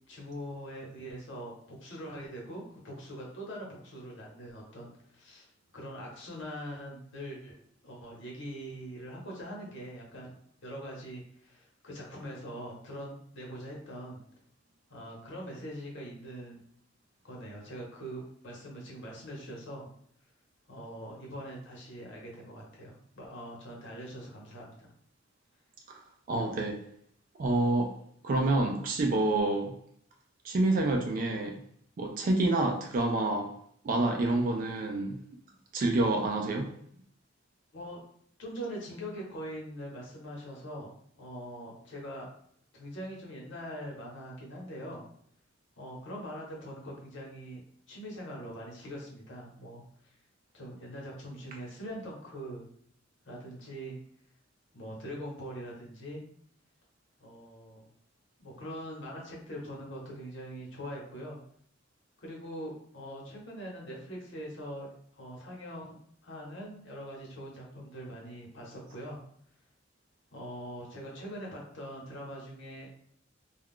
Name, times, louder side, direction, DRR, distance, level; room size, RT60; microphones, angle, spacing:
voice 1, 0.1-7.6 7.8-10.3 10.6-14.2 14.9-16.6 17.2-19.9 20.7-24.9 37.7-38.0 38.4-42.3 42.7-45.0 45.8-47.6 47.9-49.8 50.5-52.6 53.2-53.9 54.7-56.2 57.2-57.9 58.4-61.4 62.2-69.2 70.3-72.9, equal, 65° left, -3 dB, 1.0 m, -42 dB
voice 2, 26.3-26.8 27.4-27.9 28.2-29.7 30.4-31.6 32.0-33.5 33.8-35.2 35.7-36.7, right 2 dB, 45° right, 3 dB, 0.3 m, -28 dB
2.3 x 2.2 x 3.6 m, 0.66 s
head